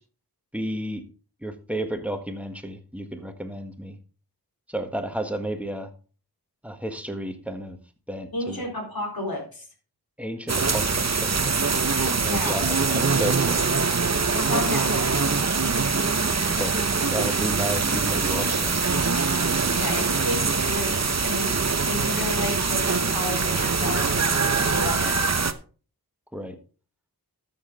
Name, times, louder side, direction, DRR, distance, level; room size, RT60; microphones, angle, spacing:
voice 1, 0.5-1.0 1.4-4.0 4.7-5.9 6.6-7.8 8.1-8.7 10.2-11.6 12.2-13.6 16.6-18.8 26.3-26.5, right 1 dB, 5° right, 6 dB, 1.6 m, -32 dB
voice 2, 8.3-9.7 12.2-12.8 14.3-15.2 19.7-21.6 21.9-25.1, left 1 dB, 65° left, -1 dB, 4.1 m, -32 dB
sound 1, 10.5-25.5, right 4 dB, 45° right, 0.9 m, -23 dB
13.0 x 7.2 x 3.9 m, 0.39 s
wide cardioid pair, 45°, 38 cm